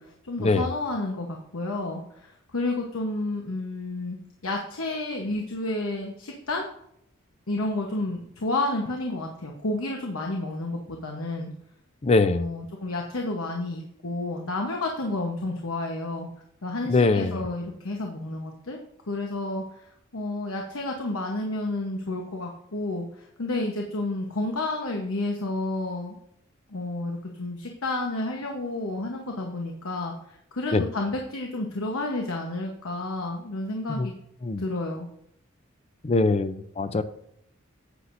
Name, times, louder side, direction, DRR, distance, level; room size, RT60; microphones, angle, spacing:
voice 1, 0.0-6.7 7.5-11.5 12.3-16.3 16.6-18.8 19.1-26.2 26.7-34.1 34.6-35.1, left 2 dB, 90° left, 1 dB, 1.1 m, -31 dB
voice 2, 12.0-12.4 16.9-17.4 30.7-30.8 33.9-34.1 34.4-34.6 36.0-37.0, left 3 dB, 30° left, 12 dB, 0.5 m, -22 dB
9.9 x 8.0 x 2.6 m, 0.73 s
head